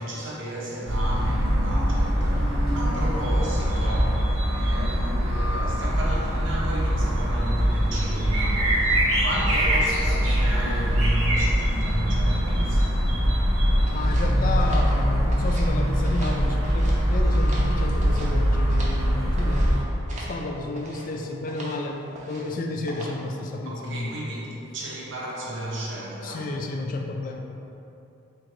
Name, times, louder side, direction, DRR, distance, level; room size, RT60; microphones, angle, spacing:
voice 1, 0.0-13.1 23.6-26.5, right 1 dB, 60° right, -4 dB, 0.8 m, -33 dB
sound 1, 0.9-19.8, equal, 90° right, 0.9 m, -22 dB
sound 2, 13.8-15.7 16.0-17.0 17.3-19.0 19.4-19.7 20.1-20.4 20.7-21.1 21.5-21.8 22.1-22.5 22.9-23.3, right 1 dB, 35° right, 0.6 m, -41 dB
voice 2, 13.9-24.4 26.2-27.4, left 2 dB, 40° left, 2 dB, 0.3 m, -31 dB
3.7 x 2.6 x 4.6 m, 2.8 s
head